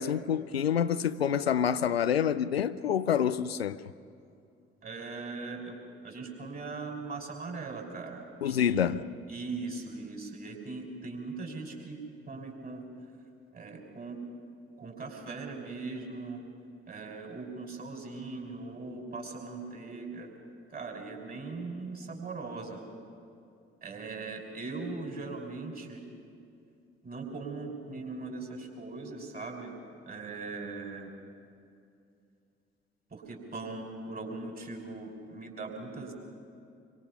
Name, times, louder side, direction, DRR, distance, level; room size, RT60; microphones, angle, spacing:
voice 1, 0.0-3.8 8.4-9.0, left 8 dB, 85° left, 0.5 m, -27 dB
voice 2, 4.8-8.9 9.3-12.8 13.5-14.2 14.8-16.4 16.9-20.3 20.7-22.8 23.8-26.0 27.0-29.7 30.0-31.1 33.1-36.1, right 3 dB, 30° right, 5.8 m, -40 dB
26.5 x 24.5 x 5.7 m
figure-of-eight pair, 45°, 30 cm